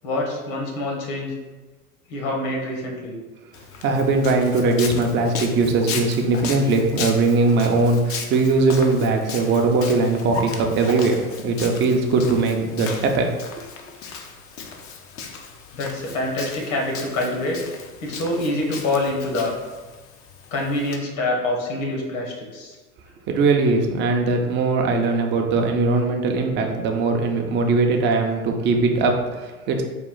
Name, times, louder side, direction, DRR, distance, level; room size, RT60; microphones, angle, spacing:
voice 1, 0.0-1.3 2.1-3.2 5.9-6.0 15.7-17.6 18.0-19.6 20.5-22.8, left 2 dB, 65° left, 0 dB, 1.4 m, -26 dB
Walk footsteps, 3.5-21.0, left 5 dB, 35° left, 0.5 m, -36 dB
voice 2, 3.8-13.3 23.3-29.8, right 3 dB, 25° right, 2 dB, 0.5 m, -20 dB
4.3 x 2.4 x 3.7 m, 1.2 s
hypercardioid pair, 105°, 44 cm